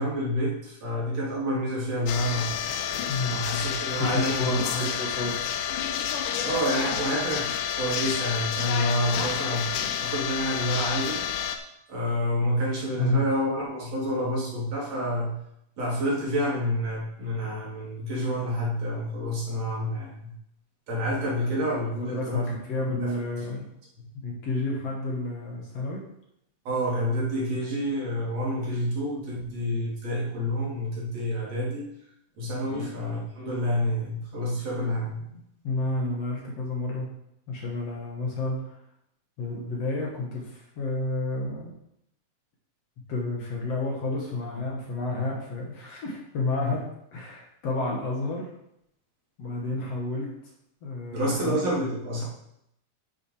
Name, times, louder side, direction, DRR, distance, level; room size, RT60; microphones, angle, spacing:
voice 1, 0.0-2.5 3.3-4.9 6.4-9.7 10.0-11.2 11.9-15.4 15.8-20.3 20.9-22.5 23.0-23.1 26.7-31.9 32.4-35.4 51.1-52.2, equal, 50° right, -5 dB, 4.1 m, -28 dB
sound 1, 2.1-11.6, left 9 dB, 80° left, 2.3 m, -29 dB
voice 2, 3.1-3.5 4.0-5.6 12.9-13.2 21.3-21.5 21.9-23.7 24.2-26.0 32.7-32.9 35.6-37.1 37.5-38.8 39.4-41.7 43.1-48.5 49.4-50.3 50.8-51.6, left 2 dB, 55° left, -2 dB, 2.7 m, -31 dB
10.0 x 6.3 x 5.1 m, 0.78 s
omnidirectional pair, 3.8 m